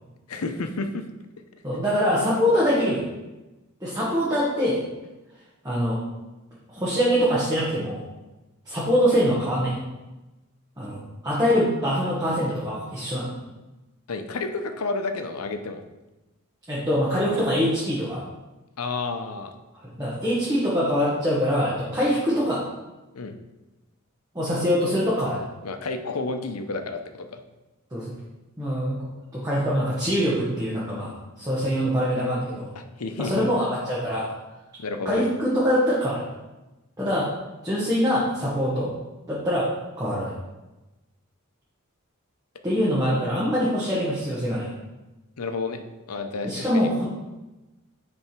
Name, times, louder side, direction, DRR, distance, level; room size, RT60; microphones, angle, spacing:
voice 1, 0.3-1.0 14.1-15.8 18.8-19.5 23.1-23.3 25.6-27.4 32.8-33.5 34.8-35.3 45.4-46.9, left 3 dB, 80° left, 7 dB, 0.7 m, -31 dB
voice 2, 1.6-3.0 3.8-4.8 5.6-6.0 6.7-8.0 8.6-9.8 10.8-11.0 11.2-13.4 16.7-18.2 20.0-22.6 24.3-25.4 27.9-28.1 28.6-29.0 29.3-32.7 33.2-34.3 35.0-36.2 37.0-37.3 37.6-38.9 39.3-39.7 40.0-40.3 42.6-44.7 46.4-47.0, equal, 15° right, -8 dB, 1.4 m, -24 dB
8.9 x 3.5 x 4.5 m, 1.1 s
head